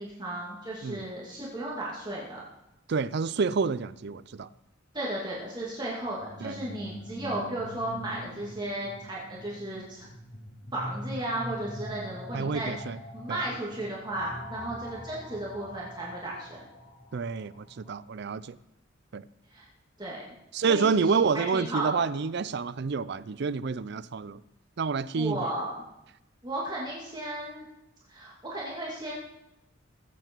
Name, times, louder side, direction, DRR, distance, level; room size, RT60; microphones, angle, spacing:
voice 1, 0.0-2.4 4.9-10.0 10.7-12.7 13.1-16.6 19.5-19.6 20.0-20.2 20.6-22.1 25.2-25.8 26.4-27.7 28.1-29.1, right 1 dB, 20° right, 2.4 m, -35 dB
voice 2, 2.9-4.5 6.4-6.6 12.3-13.0 13.3-13.4 17.1-18.6 19.1-19.3 20.5-24.4 24.8-25.5, right 5 dB, 60° right, 0.4 m, -28 dB
sound 1, 6.0-17.9, equal, 90° left, 2.8 m, -43 dB
20.5 x 8.0 x 4.5 m
head